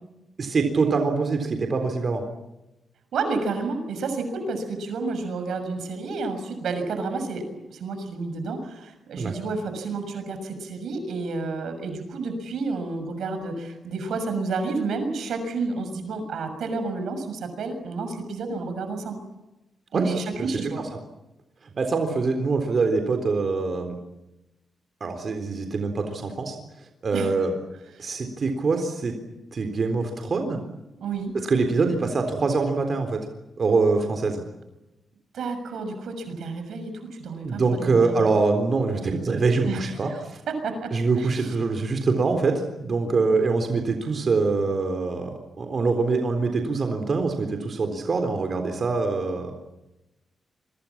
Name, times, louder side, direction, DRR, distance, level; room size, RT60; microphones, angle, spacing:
voice 1, 0.4-2.2 9.2-9.3 19.9-20.7 21.8-24.0 25.0-26.6 27.0-27.5 28.0-29.1 29.5-30.6 31.4-33.2 33.6-34.4 37.4-40.4 40.9-49.5, right 4 dB, 45° right, 5 dB, 3.8 m, -24 dB
voice 2, 3.1-7.4 7.7-19.2 19.9-20.8 27.1-27.3 28.0-28.1 31.0-31.3 35.3-38.3 39.6-40.2 40.5-40.9 41.2-41.5, right 3 dB, 80° right, 8 dB, 6.5 m, -30 dB
28.0 x 23.5 x 7.4 m, 0.96 s
cardioid pair, 115°, 0 cm